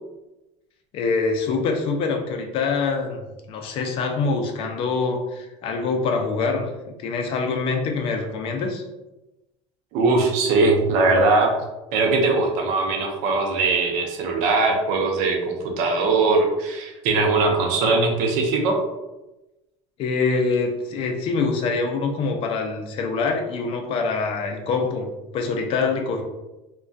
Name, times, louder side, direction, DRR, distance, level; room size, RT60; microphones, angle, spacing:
voice 1, 0.9-8.8 20.0-26.2, left 4 dB, 45° left, 3 dB, 0.4 m, -25 dB
voice 2, 9.9-11.5 11.9-18.8, right 3 dB, 65° right, 2 dB, 0.5 m, -20 dB
2.2 x 2.2 x 2.5 m, 1.0 s
cardioid pair, 145°, 13 cm